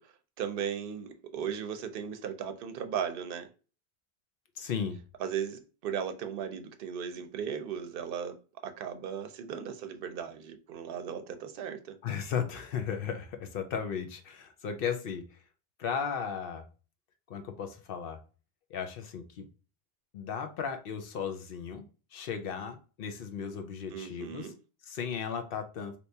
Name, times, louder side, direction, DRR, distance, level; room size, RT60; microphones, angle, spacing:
voice 1, 0.0-3.5 5.2-8.4 8.6-12.0 23.9-24.6, right 8 dB, 65° right, 0.7 m, -37 dB
voice 2, 4.6-5.0 12.0-15.2 15.8-16.6 17.3-18.2 18.7-19.5 20.1-21.8 22.1-24.5 24.9-25.9, left 7 dB, 65° left, 0.8 m, -35 dB
3.3 x 2.9 x 2.7 m
omnidirectional pair, 1.1 m